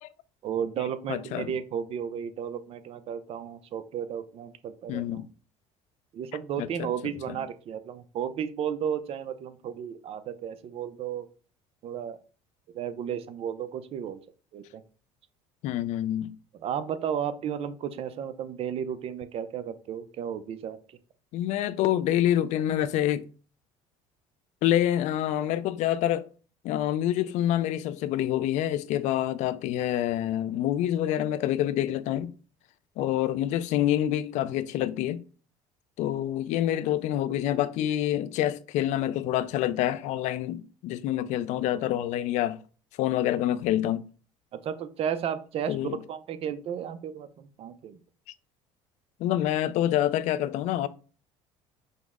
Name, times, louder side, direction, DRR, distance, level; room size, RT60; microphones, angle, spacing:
voice 1, 0.4-5.2 6.1-11.3 11.8-12.2 12.7-14.2 14.5-14.8 16.6-21.0 44.5-48.0, right 8 dB, 50° right, 0.5 m, -33 dB
voice 2, 1.1-1.5 4.9-5.3 6.6-6.9 7.3-7.4 15.6-16.4 21.3-23.3 24.6-26.3 26.6-32.3 33.0-35.2 36.0-42.6 43.0-44.1 45.7-46.0 49.2-50.9, left 12 dB, 65° left, 0.4 m, -27 dB
5.2 x 2.1 x 3.5 m
supercardioid pair, 105°, 13 cm